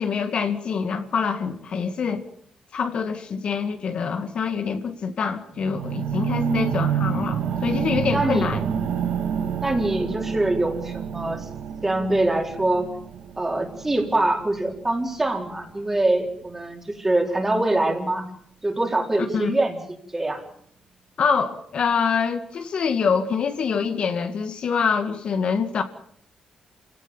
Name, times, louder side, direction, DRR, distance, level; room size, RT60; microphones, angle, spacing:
voice 1, 0.0-2.2 2.7-8.7 19.3-19.6 21.2-25.8, left 6 dB, 55° left, 6 dB, 2.2 m, -25 dB
sound 1, 5.5-15.7 16.3-16.4, right 7 dB, 75° right, 2.8 m, -28 dB
voice 2, 8.1-8.5 9.6-11.5 11.8-12.9 13.4-18.3 18.6-19.8 20.1-20.4, right 2 dB, 15° right, 2 dB, 4.4 m, -24 dB
27.5 x 17.5 x 7.3 m, 0.65 s
cardioid pair, 120°, 2 cm